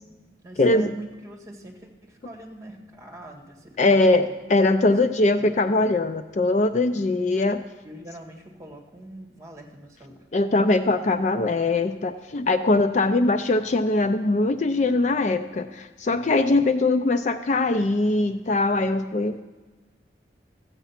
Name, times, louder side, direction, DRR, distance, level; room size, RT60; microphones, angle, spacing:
voice 1, 0.1-4.3 4.8-5.5 7.8-10.2, right 1 dB, 15° right, 1 dB, 1.8 m, -43 dB
voice 2, 0.6-0.9 3.8-7.6 10.3-19.4, left 2 dB, 40° left, 9 dB, 0.4 m, -21 dB
14.5 x 8.1 x 5.8 m, 1.2 s
head